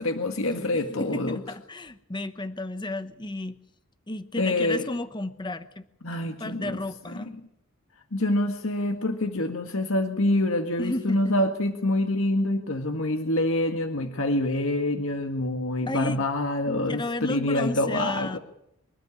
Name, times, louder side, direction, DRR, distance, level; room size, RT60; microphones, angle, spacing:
voice 1, 0.0-1.4 4.4-4.8 6.0-6.8 7.2-7.3 8.1-18.4, left 1 dB, 65° left, 5 dB, 1.8 m, -26 dB
voice 2, 0.7-3.6 4.1-5.8 6.2-7.3 10.8-11.3 15.9-16.2 16.9-18.4, left 2 dB, 20° left, 11 dB, 0.9 m, -33 dB
25.5 x 13.0 x 9.7 m, 0.79 s
head